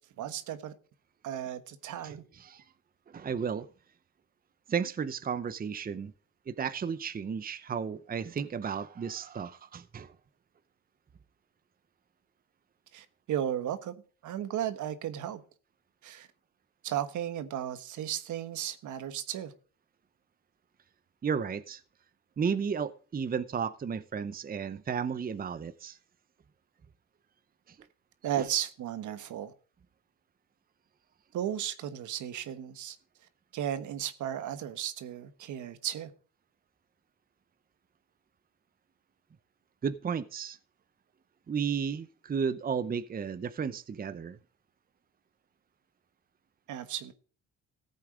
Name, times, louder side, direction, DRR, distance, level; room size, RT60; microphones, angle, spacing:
voice 1, 0.2-0.7 1.2-2.2 12.9-13.9 14.2-15.4 16.0-16.3 16.8-19.5 28.2-29.5 31.3-33.0 33.5-36.1 46.7-47.1, right 10 dB, 75° right, 1.3 m, -35 dB
voice 2, 2.0-2.6 3.1-3.7 4.7-6.1 6.5-10.1 21.2-21.8 22.4-26.0 27.7-27.8 28.4-28.5 39.8-40.6 41.5-44.4, right 6 dB, 30° right, 0.7 m, -33 dB
15.0 x 8.4 x 3.7 m
cardioid pair, 90°, 30 cm